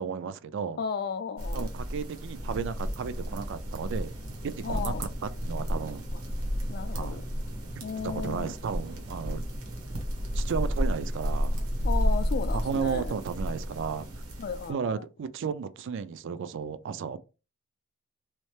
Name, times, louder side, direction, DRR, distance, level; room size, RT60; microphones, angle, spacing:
voice 1, 0.0-0.8 1.5-4.1 4.4-6.1 6.9-7.2 8.0-9.4 10.3-11.6 12.5-14.1 14.7-17.2, right 6 dB, 60° right, 0.4 m, -34 dB
voice 2, 0.8-1.7 4.6-5.0 6.7-7.2 7.8-8.5 11.8-13.1 14.4-15.0, left 6 dB, 45° left, 0.3 m, -34 dB
sound 1, 1.4-14.7, equal, 80° right, 1.1 m, -32 dB
sound 2, 2.3-14.3, right 1 dB, 15° right, 0.6 m, -44 dB
3.1 x 3.1 x 3.2 m
head